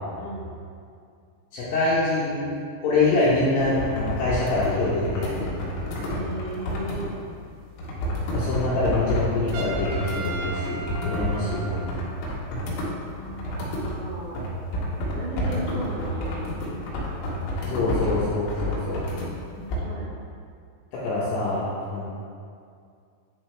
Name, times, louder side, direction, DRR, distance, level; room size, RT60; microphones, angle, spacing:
voice 1, 0.2-0.5 6.1-7.2 11.3-11.8 13.0-14.5 15.1-16.8 19.5-20.2, right 1 dB, 65° right, -9 dB, 1.6 m, -36 dB
voice 2, 1.5-2.5 2.8-5.5 8.3-11.6 17.6-19.0 20.9-22.0, left 2 dB, 75° left, -9 dB, 2.6 m, -25 dB
sound 1, 3.6-7.1 7.8-14.0 14.4-19.3 19.7-19.8, equal, 90° left, 3.8 m, -30 dB
Trumpet, 9.5-12.2, right 3 dB, 85° right, 2.5 m, -36 dB
9.5 x 4.0 x 3.2 m, 2.3 s
omnidirectional pair, 5.7 m